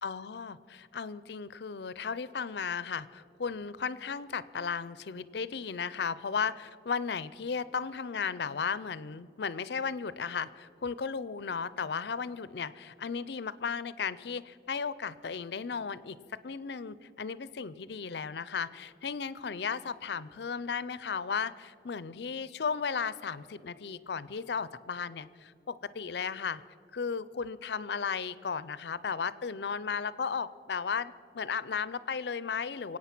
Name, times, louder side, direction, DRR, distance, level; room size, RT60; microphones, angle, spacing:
voice 1, 0.0-16.2 16.4-26.6 26.9-33.0, left 6 dB, 65° left, 17 dB, 0.5 m, -35 dB
25.0 x 8.7 x 6.0 m, 2.5 s
head